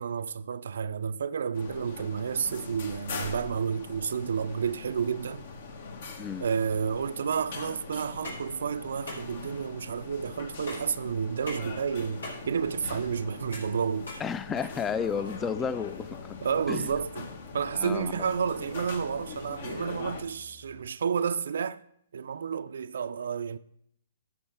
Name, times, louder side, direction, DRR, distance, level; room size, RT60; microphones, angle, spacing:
voice 1, 0.0-5.4 6.4-14.1 16.4-17.3 17.5-21.8 22.1-23.6, right 6 dB, 70° right, 0.3 m, -31 dB
sound 1, 1.5-20.2, left 4 dB, 60° left, 1.2 m, -42 dB
sound 2, 8.2-15.0, left 1 dB, 85° left, 3.3 m, -44 dB
voice 2, 14.2-16.4 16.7-16.9 17.7-18.2, left 6 dB, 15° left, 0.3 m, -32 dB
Musical instrument, 14.6-21.0, left 5 dB, 40° left, 1.8 m, -57 dB
12.0 x 6.4 x 3.4 m
hypercardioid pair, 140°, 0 cm